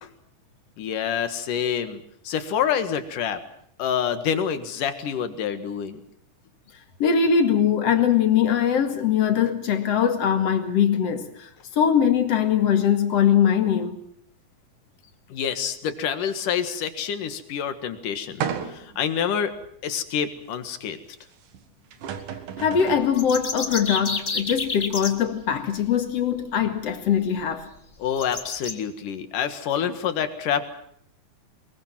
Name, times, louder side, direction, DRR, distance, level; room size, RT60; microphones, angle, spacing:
voice 1, 0.8-3.4 3.8-6.0 15.3-19.5 19.8-21.0 28.0-30.6, left 8 dB, 80° left, 3.3 m, -27 dB
voice 2, 7.0-11.5 11.8-14.0 22.6-27.7, left 8 dB, 55° left, 2.8 m, -21 dB
sound 1, 18.4-19.0 19.6-19.7 21.5-21.6 21.9-23.1, right 8 dB, 80° right, 3.3 m, -32 dB
sound 2, 23.0-25.1 26.9-27.0 27.4-27.5 28.2-28.7, left 4 dB, 30° left, 1.3 m, -29 dB
23.0 x 22.0 x 7.4 m
omnidirectional pair, 3.7 m